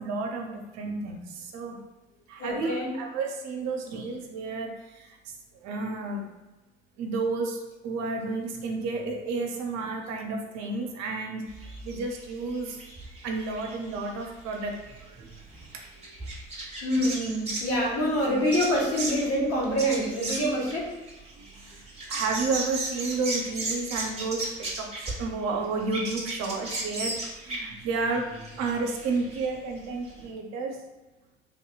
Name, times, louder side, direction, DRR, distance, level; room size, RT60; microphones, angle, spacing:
voice 1, 0.0-1.8 2.3-5.3 5.6-6.2 7.0-11.5 11.8-12.8 13.2-15.3 21.4-21.8 22.1-30.8, right 3 dB, 55° right, 2 dB, 0.7 m, -31 dB
voice 2, 2.4-2.9 16.8-20.9, equal, 45° left, -4 dB, 1.4 m, -26 dB
sound 1, 11.5-17.8 18.3-25.5 25.8-29.5 29.8-29.9 30.0-30.1, right 2 dB, 20° right, 1.4 m, -36 dB
3.5 x 2.8 x 2.3 m, 1.1 s
hypercardioid pair, 60°, 32 cm